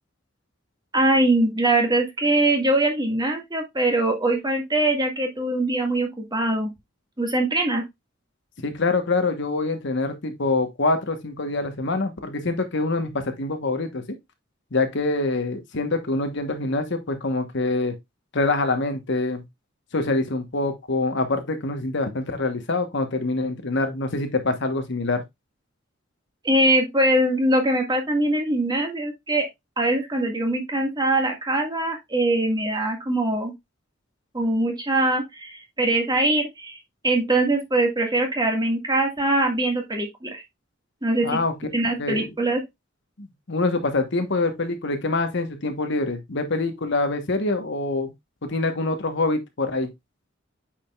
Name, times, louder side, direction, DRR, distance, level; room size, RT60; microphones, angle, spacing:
voice 1, 0.9-6.7 7.2-7.8 26.4-29.5 29.8-33.5 34.3-36.8 37.0-40.4 41.0-41.4 41.7-42.6, right 1 dB, 20° right, 1.8 m, -22 dB
voice 2, 8.6-14.0 14.7-17.9 18.3-19.4 19.9-25.2 41.2-41.5 42.0-42.3 43.2-48.1 48.4-49.9, left 2 dB, 65° left, 1.2 m, -25 dB
8.8 x 5.1 x 2.4 m
head